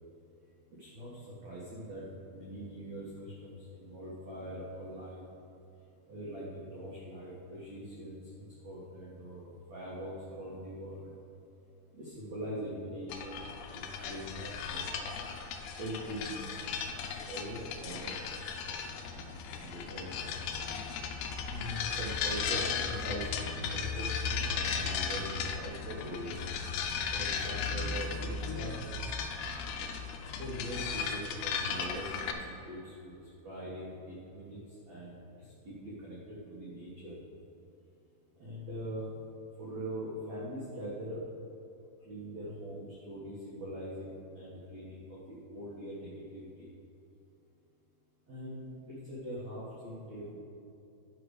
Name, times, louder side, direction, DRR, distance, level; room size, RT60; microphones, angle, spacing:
voice 1, 0.8-5.2 6.1-11.1 11.9-15.3 15.8-16.6 17.1-18.3 18.7-20.5 21.4-23.3 23.6-26.3 27.1-28.8 30.3-37.2 38.4-39.1 39.6-41.2 42.0-46.7 48.3-50.3, equal, 55° right, -7 dB, 2.0 m, -42 dB
sound 1, 13.1-32.3, left 6 dB, 80° left, 2.3 m, -36 dB
12.0 x 4.8 x 6.5 m, 2.9 s
omnidirectional pair, 5.2 m